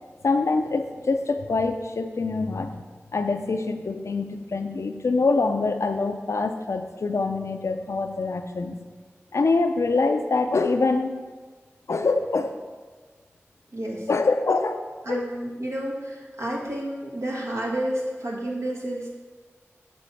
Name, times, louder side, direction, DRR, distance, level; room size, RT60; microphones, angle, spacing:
voice 1, 0.2-2.8 3.1-8.8 9.3-11.2 11.9-12.5 14.1-15.3, left 3 dB, 80° left, 7 dB, 0.4 m, -25 dB
voice 2, 13.7-14.1 15.1-19.1, right 1 dB, 90° right, -3 dB, 1.1 m, -30 dB
6.3 x 3.0 x 5.6 m, 1.4 s
wide cardioid pair, 40°, 5 cm